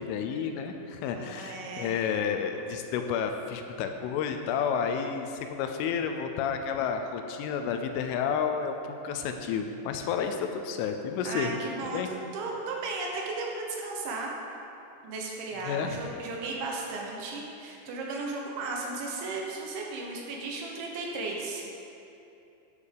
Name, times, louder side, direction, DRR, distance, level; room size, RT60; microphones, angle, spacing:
voice 1, 0.0-8.8 9.0-11.5 11.9-12.1 15.7-16.0, left 7 dB, 80° left, 6 dB, 3.1 m, -31 dB
voice 2, 1.1-1.9 11.3-14.3 15.0-21.7, right 3 dB, 75° right, -1 dB, 3.3 m, -35 dB
10.0 x 7.3 x 6.7 m, 2.8 s
omnidirectional pair, 5.8 m